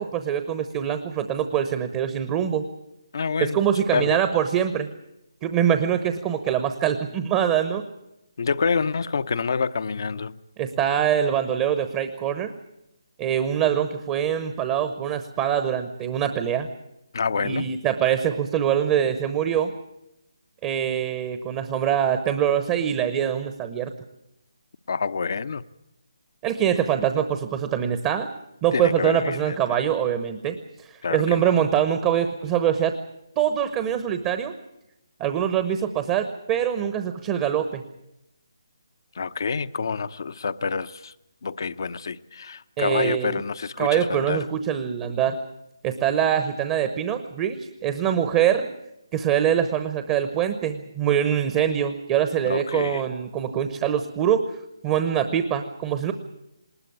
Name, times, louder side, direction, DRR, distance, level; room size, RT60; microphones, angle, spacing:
voice 1, 0.0-2.7 3.4-4.9 5.4-7.8 10.6-12.5 13.2-16.7 17.4-19.7 20.6-23.9 26.4-28.3 28.6-32.9 33.4-34.5 35.2-37.8 42.8-43.4 43.8-45.4 45.8-48.7 49.1-54.4 54.8-56.1, right 9 dB, 20° right, 1.0 m, -24 dB
voice 2, 3.1-4.2 8.4-10.4 17.1-17.7 24.9-25.6 28.7-29.6 31.0-31.7 39.1-41.1 41.4-44.4 52.4-53.0, left 5 dB, 55° left, 0.7 m, -27 dB
20.0 x 19.5 x 8.5 m
figure-of-eight pair, 150°, 2 cm